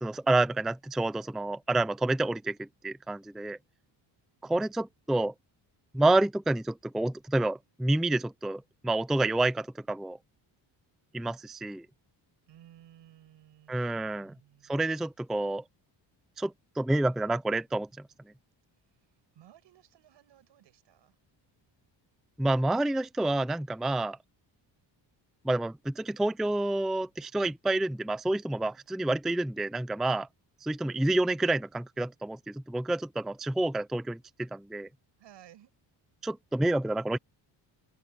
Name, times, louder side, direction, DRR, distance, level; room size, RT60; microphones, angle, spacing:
voice 1, 0.0-3.6 4.4-5.3 5.9-10.2 11.1-11.9 13.7-14.3 14.7-15.6 16.4-17.9 22.4-24.2 25.4-30.3 30.6-34.9 36.2-37.2, right 2 dB, ahead, 0.4 m, -29 dB
voice 2, 12.5-14.9 19.3-21.2 35.2-35.7, right 12 dB, 75° right, 7.5 m, -57 dB
cardioid pair, 150°, 44 cm